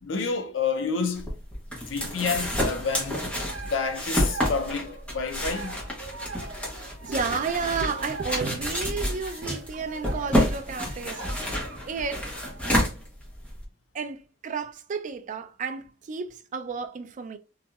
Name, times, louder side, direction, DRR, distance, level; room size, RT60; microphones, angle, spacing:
voice 1, 0.0-1.3 1.7-3.2 3.6-5.8, left 5 dB, 70° left, 0.6 m, -29 dB
sound 1, 1.2-13.6, equal, 5° left, 1.0 m, -29 dB
sound 2, 3.3-12.9, right 3 dB, 70° right, 0.7 m, -43 dB
voice 2, 6.8-12.3 13.9-17.4, right 5 dB, 40° right, 0.3 m, -32 dB
3.1 x 2.6 x 2.3 m
head